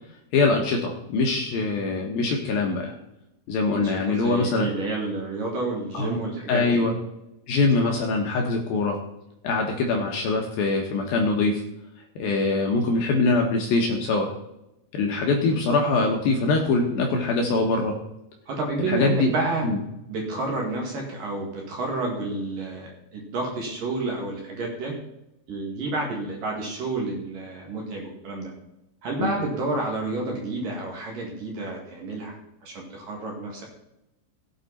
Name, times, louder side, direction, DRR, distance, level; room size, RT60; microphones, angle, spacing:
voice 1, 0.3-2.9 3.5-4.7 5.9-6.2 6.5-7.0 7.5-9.0 9.4-11.6 12.2-14.3 14.9-18.0 18.9-19.3 19.6-19.8 29.2-29.3, left 3 dB, 75° left, 1 dB, 2.2 m, -23 dB
voice 2, 3.7-6.8 7.8-7.9 15.5-15.6 18.5-19.7 20.1-24.9 25.5-28.5 29.0-32.4 32.6-33.6, right 2 dB, 50° right, 0 dB, 3.3 m, -30 dB
16.5 x 8.9 x 4.2 m, 0.88 s
omnidirectional pair, 5.9 m